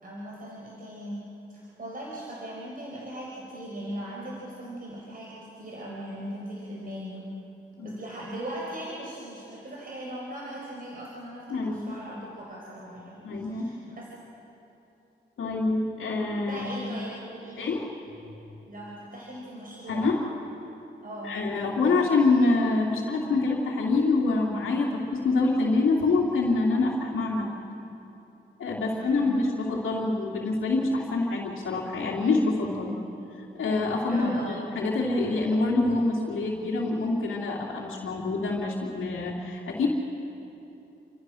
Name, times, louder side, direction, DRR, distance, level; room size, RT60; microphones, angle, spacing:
voice 1, 0.0-7.2 7.8-14.1 16.5-17.7 18.7-20.2 21.0-21.3 28.9-29.4 34.1-34.6, right 1 dB, 45° right, -4 dB, 4.9 m, -39 dB
voice 2, 11.5-11.9 13.2-13.7 15.4-16.9 17.6-17.9 19.9-20.2 21.2-27.5 28.6-33.0 33.4-39.9, left 3 dB, 80° left, -5 dB, 2.7 m, -26 dB
29.0 x 14.0 x 6.4 m, 2.9 s
cardioid pair, 70°, 20 cm